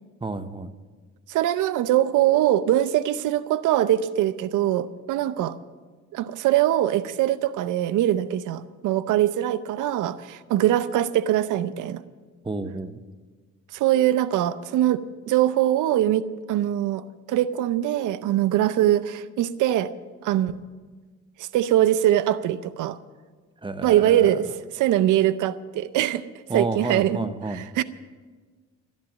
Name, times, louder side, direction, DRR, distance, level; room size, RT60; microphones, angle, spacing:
voice 1, 0.2-0.7 12.4-13.0 23.6-24.3 26.5-27.6, right 3 dB, 15° right, 11 dB, 0.8 m, -30 dB
voice 2, 1.3-5.5 6.1-12.0 13.7-19.9 20.2-20.5 21.4-23.0 23.8-26.2 26.5-27.8, right 12 dB, 85° right, 15 dB, 0.6 m, -22 dB
13.0 x 10.5 x 7.3 m, 1.4 s
cardioid pair, 90°, 30 cm